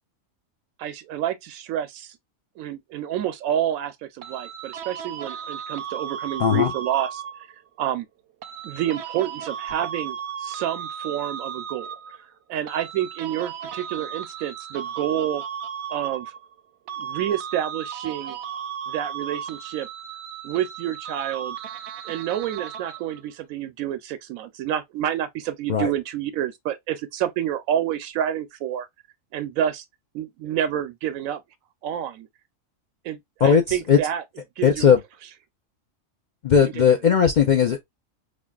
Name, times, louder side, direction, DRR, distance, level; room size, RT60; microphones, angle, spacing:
voice 1, 0.8-2.2 2.6-7.2 7.8-8.1 8.6-11.9 12.5-15.4 15.9-16.3 17.0-18.4 18.9-19.9 20.4-21.6 22.0-28.9 29.3-29.8 30.1-31.4 31.8-32.3 33.0-34.2 34.6-34.9 36.7-36.9, right 10 dB, 90° right, 1.0 m, -28 dB
sound 1, 4.2-7.6 8.4-12.2 12.7-16.6 16.9-23.2, right 8 dB, 65° right, 0.8 m, -35 dB
voice 2, 6.4-6.7 25.7-25.9 33.4-34.0 34.6-35.0 36.4-37.8, left 7 dB, 60° left, 0.4 m, -18 dB
5.0 x 2.4 x 2.3 m
omnidirectional pair, 1.4 m